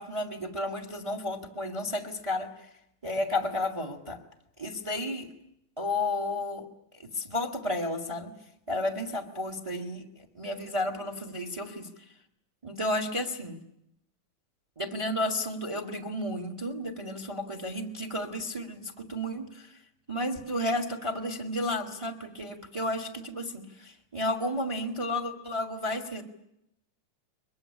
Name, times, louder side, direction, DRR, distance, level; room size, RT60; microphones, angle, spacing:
voice 1, 0.0-2.5 3.0-4.2 4.6-5.3 5.8-6.6 7.0-8.3 8.7-10.0 10.3-11.9 12.6-13.6 14.8-19.7 20.1-26.2, left 1 dB, 15° right, 8 dB, 1.0 m, -32 dB
22.5 x 22.5 x 9.9 m, 0.80 s
omnidirectional pair, 3.9 m